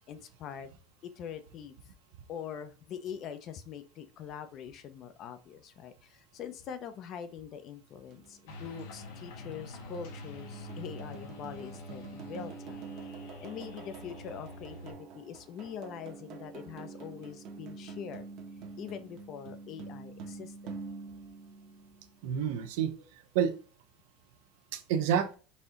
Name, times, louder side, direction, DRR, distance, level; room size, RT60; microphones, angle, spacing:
voice 1, 0.1-0.7 1.0-1.7 2.3-12.9 13.4-18.2 18.8-20.7, left 8 dB, 40° left, 10 dB, 0.6 m, -43 dB
sound 1, 8.1-22.3, right 5 dB, 45° right, 0.9 m, -47 dB
sound 2, 8.5-14.9, left 2 dB, 80° left, 1.5 m, -46 dB
voice 2, 22.2-23.5 24.7-25.4, right 8 dB, 75° right, 9 dB, 0.7 m, -29 dB
4.1 x 2.8 x 3.7 m, 0.36 s
cardioid pair, 160°, 0 cm